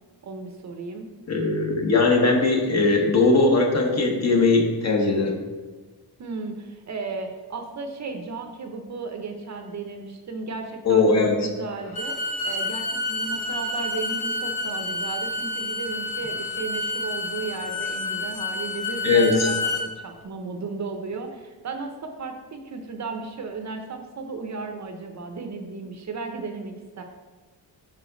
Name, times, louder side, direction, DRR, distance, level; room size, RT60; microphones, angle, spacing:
voice 1, 0.2-1.1 6.2-27.0, right 4 dB, 45° right, 5 dB, 0.6 m, -35 dB
voice 2, 1.3-5.4 10.8-11.3 19.0-19.5, left 3 dB, 40° left, 2 dB, 1.0 m, -19 dB
Bowed string instrument, 11.8-19.8, left 2 dB, 60° left, 1.5 m, -29 dB
5.5 x 5.1 x 3.8 m, 1.3 s
wide cardioid pair, 140°, 41 cm